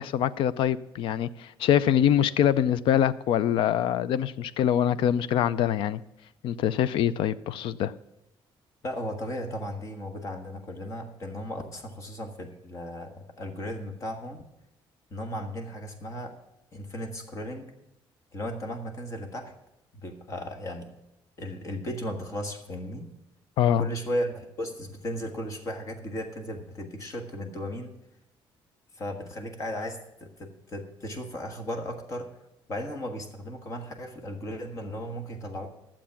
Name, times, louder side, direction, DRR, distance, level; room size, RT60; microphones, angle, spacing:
voice 1, 0.0-6.0 6.4-7.9 23.6-23.9, left 10 dB, 75° left, 0.4 m, -24 dB
voice 2, 8.8-14.5 15.1-16.3 16.7-17.7 18.3-19.5 19.9-20.9 21.4-23.1 23.7-28.0 28.9-32.3 32.7-35.7, equal, 35° left, 1.4 m, -35 dB
12.5 x 7.5 x 5.8 m
cardioid pair, 150°, 9 cm